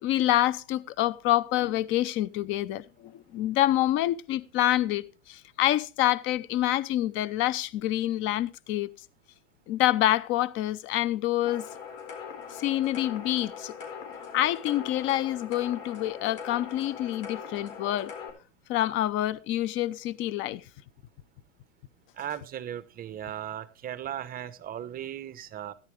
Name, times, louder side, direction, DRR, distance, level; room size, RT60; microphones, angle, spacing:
voice 1, 0.0-8.9 9.7-11.7 12.6-13.7 14.3-18.1 18.7-20.6, left 14 dB, 30° left, 0.6 m, -27 dB
sound 1, 11.4-18.3, left 6 dB, 50° left, 4.1 m, -41 dB
voice 2, 22.2-25.7, right 10 dB, 20° right, 0.9 m, -37 dB
13.5 x 10.5 x 3.3 m
hypercardioid pair, 120°, 39 cm